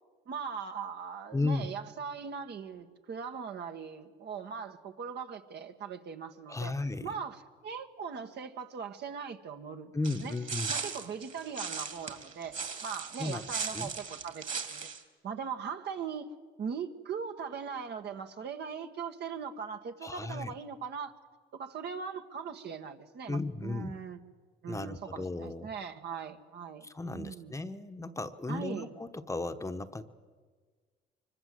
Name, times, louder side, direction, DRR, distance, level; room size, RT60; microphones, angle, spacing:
voice 1, 0.3-6.7 7.0-9.9 10.2-10.4 10.7-14.9 15.2-16.3 16.6-21.1 21.5-24.2 24.6-26.9 27.1-27.6 28.5-28.9, right 6 dB, 55° right, 6 dB, 1.7 m, -40 dB
voice 2, 1.3-1.7 6.5-7.1 9.9-10.7 13.2-13.4 13.7-13.9 20.0-20.5 23.3-23.9 24.7-25.7 26.8-30.0, left 3 dB, 15° left, 8 dB, 1.1 m, -35 dB
sound 1, 10.0-15.0, right 5 dB, 40° right, 2.8 m, -38 dB
24.5 x 22.5 x 7.9 m, 1.5 s
cardioid pair, 90°, 20 cm